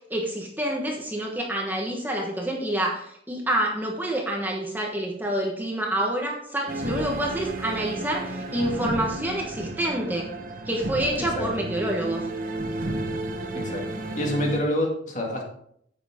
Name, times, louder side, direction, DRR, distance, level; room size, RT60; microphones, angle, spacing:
voice 1, 0.1-10.3 10.7-12.2, right 1 dB, 10° right, 0 dB, 1.2 m, -27 dB
sound 1, 6.7-14.6, right 2 dB, 50° right, 1.0 m, -32 dB
voice 2, 13.5-15.4, left 1 dB, 40° left, 0 dB, 2.2 m, -27 dB
9.7 x 7.8 x 3.6 m, 0.67 s
head